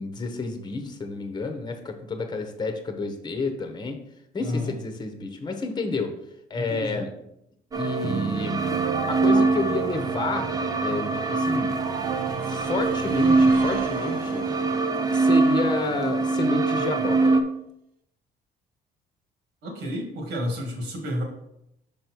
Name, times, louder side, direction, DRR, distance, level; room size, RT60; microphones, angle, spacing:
voice 1, 0.0-4.0 4.3-6.1 6.5-7.1 7.8-8.6 9.1-10.5 10.8-11.7 12.4-14.4 15.1-17.4, left 3 dB, 25° left, 6 dB, 1.0 m, -30 dB
voice 2, 4.4-4.7 6.5-7.1 19.6-21.2, left 1 dB, 85° right, 2 dB, 2.0 m, -31 dB
sound 1, 7.7-17.4, right 3 dB, 20° right, 0.6 m, -23 dB
sound 2, 8.0-14.8, right 6 dB, 55° right, 0.7 m, -34 dB
5.5 x 5.3 x 4.6 m, 0.79 s
cardioid pair, 110°, 17 cm